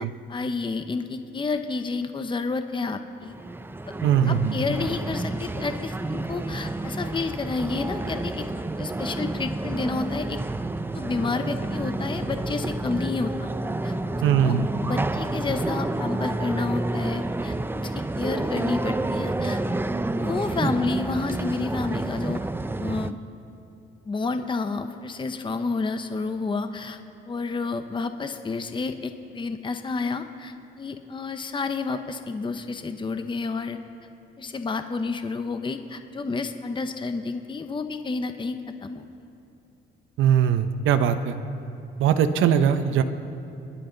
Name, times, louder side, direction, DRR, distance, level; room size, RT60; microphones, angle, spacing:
voice 1, 0.0-3.3 3.9-4.0 4.3-8.5 8.8-10.4 10.9-13.5 13.8-13.9 14.4-14.5 14.8-19.6 20.2-22.5 22.8-23.2 24.1-27.0 27.3-33.8 34.4-39.1, left 4 dB, 25° left, 8 dB, 0.8 m, -30 dB
sound 1, 3.2-23.1, right 2 dB, 10° right, 0.5 m, -29 dB
voice 2, 4.0-4.5 14.2-14.7 40.2-41.3 42.0-43.0, right 9 dB, 80° right, 9 dB, 0.8 m, -20 dB
27.0 x 11.5 x 3.9 m, 2.7 s
cardioid pair, 90°, 20 cm